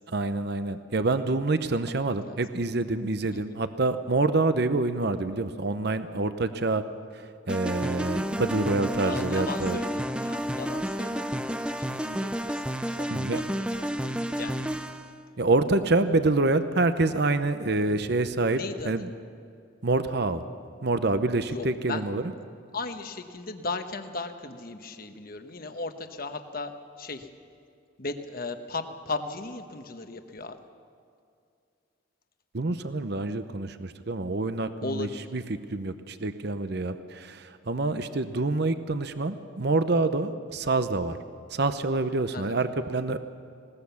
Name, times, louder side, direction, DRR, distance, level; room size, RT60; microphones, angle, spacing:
voice 1, 0.1-6.8 7.1-9.8 13.1-13.4 15.4-18.6 18.8-19.1 19.8-20.4 20.8-22.2 32.5-41.2 41.5-43.2, right 2 dB, 55° right, 11 dB, 0.8 m, -27 dB
sound 1, 7.5-15.1, equal, 5° right, 0.5 m, -31 dB
voice 2, 9.0-11.5 11.8-14.7 18.5-18.9 21.5-22.0 22.7-27.3 28.0-30.7 34.8-35.2 42.3-42.4, left 3 dB, 45° left, 7 dB, 1.1 m, -37 dB
20.0 x 18.5 x 7.1 m, 2.4 s
head